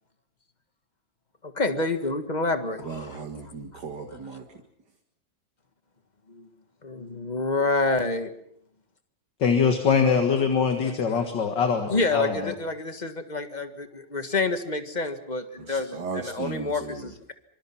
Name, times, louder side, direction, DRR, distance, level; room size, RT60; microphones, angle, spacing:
voice 1, 1.4-3.2 6.3-6.5 6.8-8.3 11.9-17.3, left 3 dB, 25° left, 9 dB, 1.7 m, -28 dB
voice 2, 2.8-4.6 15.7-17.1, right 4 dB, 65° right, 3 dB, 2.7 m, -36 dB
voice 3, 9.4-12.5, left 6 dB, 75° left, 6 dB, 2.5 m, -23 dB
25.5 x 25.5 x 5.9 m, 0.70 s
omnidirectional pair, 2.0 m